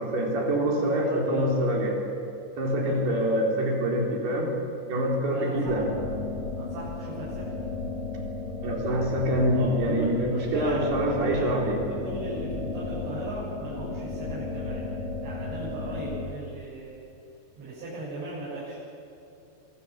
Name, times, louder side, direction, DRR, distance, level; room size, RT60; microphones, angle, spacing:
voice 1, 0.0-1.9 2.6-4.5 4.9-5.8 8.6-11.8, right 1 dB, 65° right, -2 dB, 6.0 m, -25 dB
voice 2, 0.8-1.5 2.8-3.3 5.3-5.9 6.6-7.5 9.5-14.9 15.2-17.0 17.6-18.8, right 2 dB, 85° right, -9 dB, 9.4 m, -37 dB
sound 1, 5.7-16.3, left 3 dB, 45° left, 3.2 m, -34 dB
24.5 x 24.0 x 7.3 m, 2.7 s
omnidirectional pair, 5.0 m